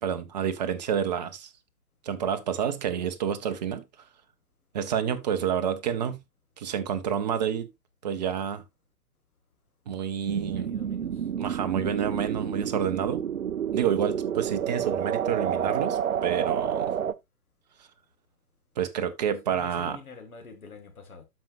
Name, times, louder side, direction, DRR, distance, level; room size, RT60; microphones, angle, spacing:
voice 1, 0.0-1.5 2.0-3.8 4.7-6.2 6.6-7.7 8.0-8.6 9.9-10.7 11.4-13.2 13.7-16.9 18.8-20.0, right 8 dB, 25° right, 0.8 m, -29 dB
sound 1, 10.3-17.1, right 8 dB, 60° right, 0.7 m, -29 dB
voice 2, 10.5-11.3 19.5-21.2, left 4 dB, 60° left, 2.1 m, -46 dB
13.0 x 5.4 x 2.5 m
figure-of-eight pair, 130°, 47 cm